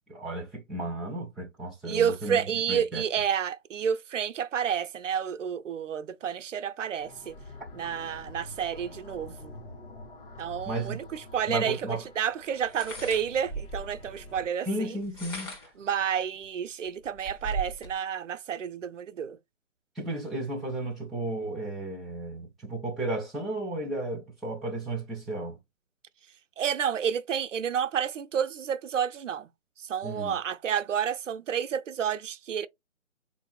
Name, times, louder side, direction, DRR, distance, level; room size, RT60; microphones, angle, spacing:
voice 1, 0.1-2.4 2.7-3.0 10.6-11.0 11.5-12.0 14.7-15.7 16.0-16.1 20.0-25.6 30.0-30.4, right 2 dB, ahead, 0.4 m, -34 dB
voice 2, 1.8-7.4 7.7-9.5 10.4-15.0 15.8-19.4 26.6-29.5 29.8-32.7, right 8 dB, 75° right, 0.5 m, -30 dB
sound 1, 7.0-14.5, left 2 dB, 40° left, 1.3 m, -47 dB
sound 2, 11.3-11.4 12.6-14.0 14.9-15.8 16.4-16.5 16.9-17.9, right 3 dB, 20° left, 0.8 m, -37 dB
3.9 x 2.6 x 3.1 m
figure-of-eight pair, 150°, 39 cm